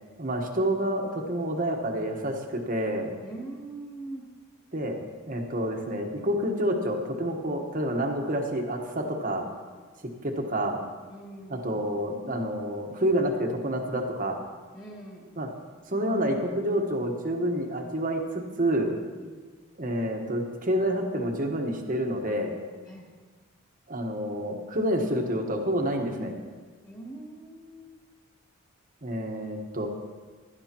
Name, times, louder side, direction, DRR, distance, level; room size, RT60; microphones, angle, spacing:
voice 1, 0.2-3.1 4.7-5.0 5.3-9.5 10.2-10.8 11.5-14.4 15.4-15.5 15.9-18.9 19.8-22.5 23.9-26.4 29.0-29.9, right 1 dB, 40° right, 3 dB, 1.2 m, -28 dB
voice 2, 3.2-4.2 11.1-11.9 14.7-15.2 19.2-19.3 22.8-23.1 26.8-27.9, right 2 dB, 15° left, -4 dB, 2.6 m, -42 dB
16.0 x 12.0 x 3.0 m, 1.5 s
head